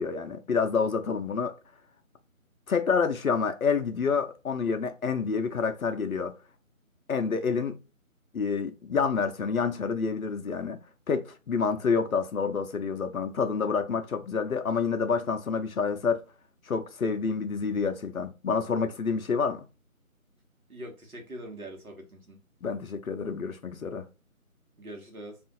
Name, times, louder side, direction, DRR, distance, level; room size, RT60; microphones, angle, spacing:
voice 1, 0.0-1.5 2.7-6.3 7.1-7.8 8.3-10.8 11.1-16.2 16.7-19.7 22.6-24.1, left 5 dB, 75° left, 0.5 m, -28 dB
voice 2, 20.7-22.4 24.8-25.4, right 1 dB, 80° right, 1.2 m, -43 dB
2.5 x 2.5 x 3.7 m
figure-of-eight pair, 160°, 42 cm